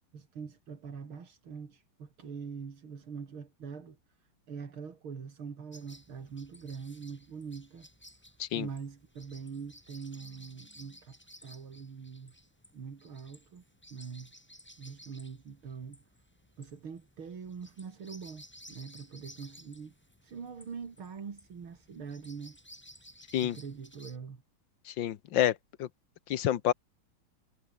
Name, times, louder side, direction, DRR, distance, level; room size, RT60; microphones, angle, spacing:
voice 1, 0.1-7.9 8.5-12.3 12.7-13.6 13.9-14.3 14.8-16.0 16.6-19.9 20.2-22.6 23.4-24.4, right 6 dB, 80° right, 3.5 m, -43 dB
sound 1, 5.7-24.2, equal, 5° left, 5.6 m, -56 dB
voice 2, 24.9-25.9 26.3-26.7, left 11 dB, 65° left, 1.7 m, -29 dB
omnidirectional pair, 2.3 m